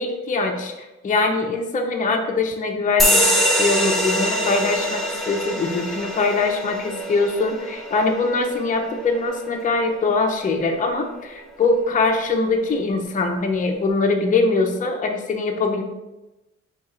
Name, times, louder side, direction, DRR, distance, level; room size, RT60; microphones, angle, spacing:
voice 1, 0.0-3.3 3.6-15.8, left 3 dB, 25° left, 2 dB, 0.6 m, -22 dB
sound 1, 3.0-10.1, equal, ahead, 1.0 m, -24 dB
3.6 x 2.9 x 4.2 m, 1.0 s
cardioid pair, 90°, 30 cm